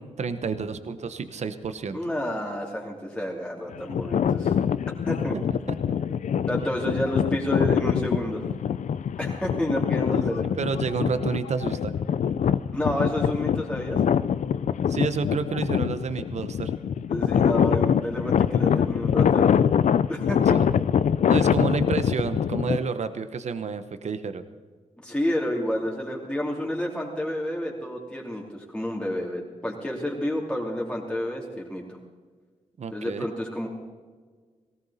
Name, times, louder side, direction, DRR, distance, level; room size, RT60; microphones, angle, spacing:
voice 1, 0.0-2.0 5.7-6.0 10.1-10.2 10.6-11.9 14.9-16.7 20.5-20.7 21.3-24.4 32.8-33.3, right 5 dB, 60° right, 10 dB, 1.0 m, -30 dB
voice 2, 1.9-4.5 5.1-5.4 6.5-8.5 9.2-10.4 12.7-14.0 17.1-19.5 20.1-20.6 25.0-31.8 32.9-33.7, equal, 10° left, -3 dB, 3.1 m, -30 dB
sound 1, 3.7-22.8, left 8 dB, 70° left, 0.5 m, -24 dB
18.5 x 17.0 x 4.2 m, 1.5 s
wide cardioid pair, 100°, 13 cm